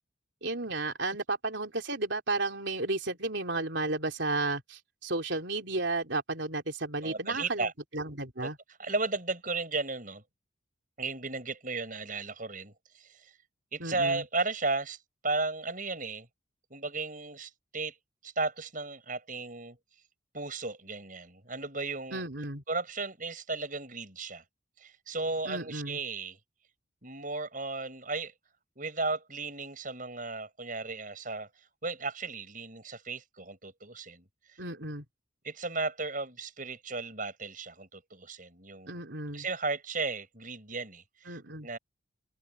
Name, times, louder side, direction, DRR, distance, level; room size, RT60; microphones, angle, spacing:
voice 1, 0.4-8.6 13.8-14.2 22.1-22.6 25.5-26.0 34.6-35.0 38.9-39.5 41.3-41.7, right 2 dB, 65° right, 3.5 m, -33 dB
voice 2, 7.0-7.7 8.8-10.2 11.0-13.3 13.7-15.0 15.2-16.3 16.7-18.0 18.2-19.8 20.3-22.2 22.7-24.4 24.8-26.4 27.0-28.3 28.8-31.5 31.8-34.2 35.4-39.0 39.3-41.8, right 3 dB, 40° right, 7.7 m, -35 dB
head